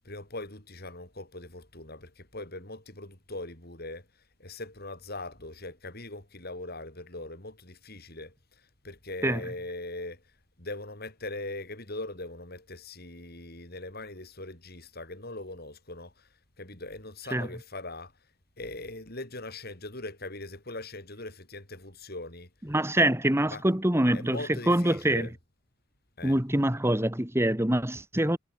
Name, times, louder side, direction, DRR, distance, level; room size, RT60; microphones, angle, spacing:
voice 1, 0.0-4.1 4.4-10.2 10.6-16.3 16.6-18.1 18.6-22.5 23.5-23.6 24.1-25.3 26.2-26.4, left 2 dB, 50° left, 6.7 m, -41 dB
voice 2, 22.7-24.4 24.7-25.3 26.2-28.4, right 1 dB, 15° right, 1.8 m, -25 dB
head